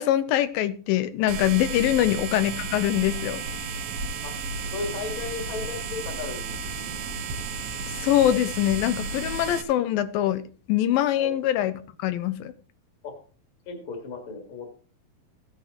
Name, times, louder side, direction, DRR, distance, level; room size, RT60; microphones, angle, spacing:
voice 1, 0.0-3.4 7.9-11.7 12.0-12.5, left 12 dB, 90° left, 13 dB, 2.5 m, -23 dB
sound 1, 1.3-9.6, right 4 dB, 85° right, 3.0 m, -33 dB
voice 2, 4.7-6.6 11.1-11.3 13.0-13.1 13.7-14.7, left 4 dB, 40° left, 2 dB, 2.3 m, -35 dB
15.5 x 9.4 x 3.1 m, 0.39 s
omnidirectional pair, 4.1 m